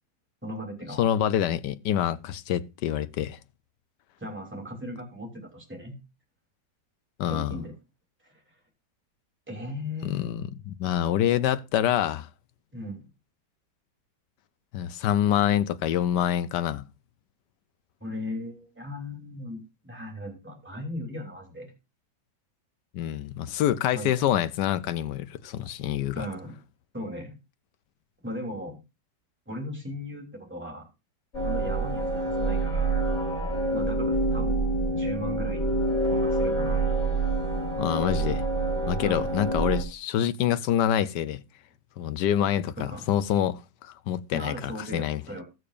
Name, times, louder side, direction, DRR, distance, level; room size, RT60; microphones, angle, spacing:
voice 1, 0.4-1.1 4.2-6.0 7.3-7.7 8.2-8.6 9.5-10.2 12.7-13.1 18.0-21.7 23.9-24.1 26.1-26.5 26.9-27.3 28.2-28.8 29.5-30.9 31.4-33.0 33.7-34.6 34.9-35.7 36.1-36.9 39.0-39.3 42.8-43.1 44.3-45.4, left 1 dB, 5° right, 3.2 m, -37 dB
voice 2, 1.0-3.4 7.2-7.6 10.0-12.3 14.7-16.9 22.9-26.3 37.8-38.4 38.9-41.4 42.0-45.2, left 10 dB, 80° left, 1.3 m, -26 dB
sound 1, 31.3-39.8, right 2 dB, 40° left, 3.7 m, -27 dB
20.5 x 6.8 x 2.5 m
omnidirectional pair, 1.9 m